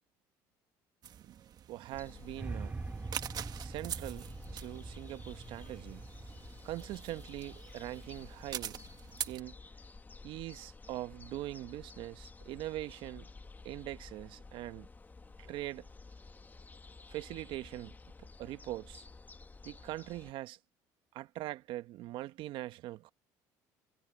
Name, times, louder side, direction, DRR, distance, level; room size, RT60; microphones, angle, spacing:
sound 1, 1.0-9.4, right 9 dB, 50° right, 1.7 m, -45 dB
voice 1, 1.7-2.8 3.6-6.0 6.6-8.8 9.3-9.6 10.2-13.3 13.6-14.9 15.4-15.9 17.1-19.0 19.6-20.6 21.1-23.1, right 15 dB, 70° right, 1.1 m, -42 dB
sound 2, 1.9-20.3, left 3 dB, 20° left, 1.6 m, -52 dB
sound 3, 2.4-8.5, right 3 dB, 20° right, 2.3 m, -45 dB
supercardioid pair, 90°, 9 cm